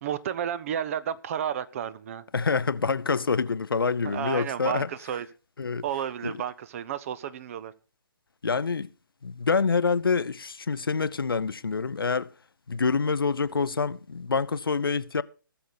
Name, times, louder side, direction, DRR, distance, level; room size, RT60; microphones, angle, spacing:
voice 1, 0.0-2.2 4.0-5.3 5.8-7.7, right 9 dB, 40° right, 0.7 m, -32 dB
voice 2, 2.3-4.9 5.6-5.8 6.2-6.3 8.4-8.9 9.2-12.3 12.7-15.2, left 5 dB, 90° left, 0.6 m, -26 dB
18.5 x 6.9 x 4.0 m
hypercardioid pair, 145°, 12 cm